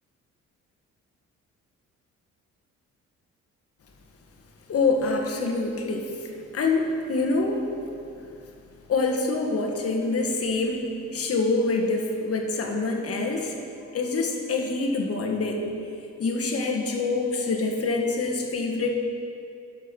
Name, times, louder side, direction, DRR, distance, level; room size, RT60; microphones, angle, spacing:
voice 1, 4.7-7.6 8.9-13.6 13.9-15.7 16.2-18.9, left 3 dB, 50° left, 2 dB, 1.5 m, -26 dB
11.0 x 6.1 x 6.0 m, 2.5 s
cardioid pair, 90°, 30 cm